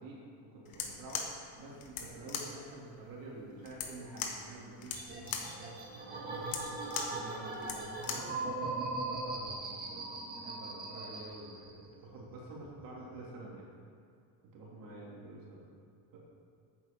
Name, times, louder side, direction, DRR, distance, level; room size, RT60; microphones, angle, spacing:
voice 1, 0.0-8.5 8.8-13.8 14.5-15.7 16.1-16.2, right 2 dB, 55° right, -4 dB, 3.2 m, -49 dB
sound 1, 0.7-8.4, left 6 dB, 60° left, 1.4 m, -41 dB
sound 2, 4.9-11.9 12.2-13.0, right 3 dB, 25° right, 2.0 m, -39 dB
8.8 x 8.7 x 7.0 m, 2.4 s
cardioid pair, 175°, 40 cm